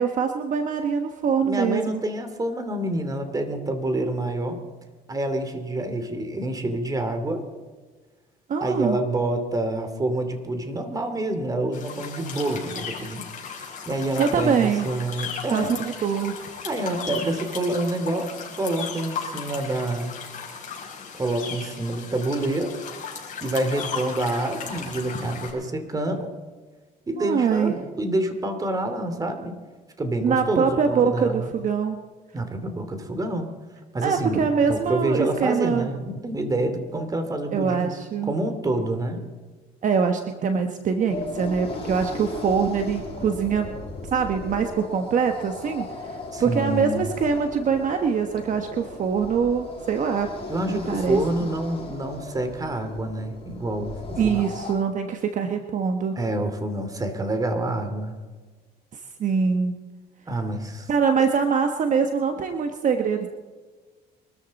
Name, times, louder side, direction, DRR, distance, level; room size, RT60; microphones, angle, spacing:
voice 1, 0.0-2.0 8.5-9.0 14.2-14.9 15.5-16.3 27.1-27.9 30.2-32.0 34.0-35.9 37.5-38.3 39.8-43.7 44.1-50.3 50.7-51.2 54.2-56.2 59.2-59.7 60.9-63.3, right 6 dB, 50° right, 5 dB, 1.2 m, -24 dB
voice 2, 1.4-4.6 5.1-7.4 8.6-13.3 13.9-15.8 16.6-20.1 21.1-22.8 23.4-26.3 27.1-29.6 30.0-31.5 32.3-33.6 33.9-37.9 38.3-39.3 46.3-47.1 50.5-54.5 56.2-58.2 60.3-60.9, right 1 dB, 20° right, 7 dB, 2.6 m, -27 dB
sound 1, 11.7-25.5, left 6 dB, 50° left, 5.3 m, -36 dB
sound 2, 41.1-54.7, left 3 dB, 35° left, 6.7 m, -37 dB
24.0 x 13.5 x 4.1 m, 1.4 s
cardioid pair, 110°, 17 cm